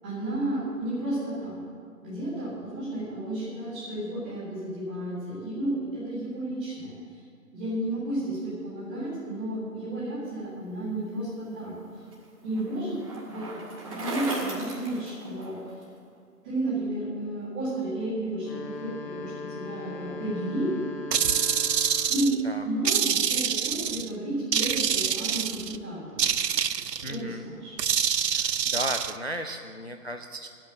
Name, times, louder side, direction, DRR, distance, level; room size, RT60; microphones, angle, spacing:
voice 1, 0.0-1.6 2.0-7.2 7.5-12.0 12.4-13.6 13.9-15.6 16.4-20.7 22.1-26.2 27.0-27.7, right 1 dB, 5° right, -11 dB, 1.8 m, -32 dB
Bicycle, 11.4-15.8, right 2 dB, 20° right, 2.0 m, -37 dB
sound 1, 18.3-22.4, left 5 dB, 90° left, 1.7 m, -40 dB
sound 2, 21.1-22.4 22.9-24.1 24.5-25.8 26.2-27.2 27.8-29.1, right 8 dB, 85° right, 0.7 m, -26 dB
voice 2, 27.0-27.4 28.3-30.5, equal, 45° left, 5 dB, 0.5 m, -35 dB
12.0 x 8.6 x 7.7 m, 2.3 s
figure-of-eight pair, 170°, 48 cm